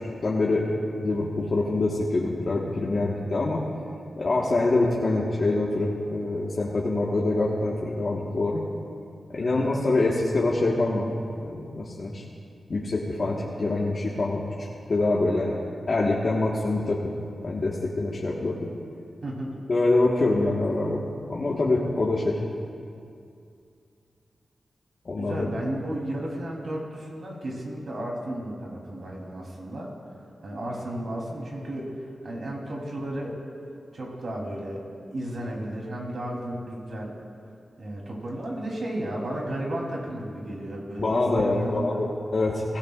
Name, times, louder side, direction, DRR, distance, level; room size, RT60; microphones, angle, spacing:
voice 1, 0.2-3.6 4.2-8.6 9.3-12.2 12.7-15.6 15.9-17.1 17.4-18.7 19.7-21.0 21.3-22.4 25.0-25.5 41.0-42.8, left 2 dB, 50° left, -5 dB, 1.5 m, -25 dB
voice 2, 9.4-9.8 19.2-19.6 25.1-29.9 30.4-31.9 32.2-33.3 33.9-34.8 35.1-37.1 37.8-42.0, right 1 dB, 65° right, -2 dB, 3.3 m, -33 dB
23.0 x 16.0 x 2.5 m, 2.4 s
wide cardioid pair, 100°, 0 cm